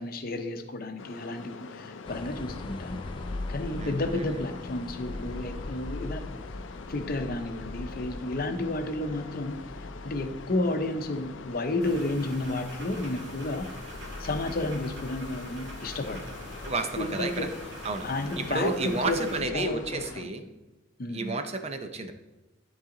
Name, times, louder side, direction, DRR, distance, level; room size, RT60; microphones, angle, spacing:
voice 1, 0.0-3.0 3.5-6.3 6.9-9.6 10.0-13.7 14.2-16.2 17.0-17.5 18.0-20.4 21.0-21.4, left 2 dB, 55° left, 7 dB, 0.7 m, -32 dB
sound 1, 1.0-20.2, left 4 dB, 85° left, 0.5 m, -45 dB
sound 2, 2.1-20.2, left 2 dB, 25° left, 0.3 m, -42 dB
voice 2, 3.8-4.4 16.6-17.5 17.8-18.1 18.4-20.5 21.1-22.1, right 3 dB, 35° right, 7 dB, 0.6 m, -31 dB
sound 3, 11.8-19.4, right 1 dB, 80° right, 2.1 m, -45 dB
12.0 x 4.1 x 3.8 m, 1.1 s
head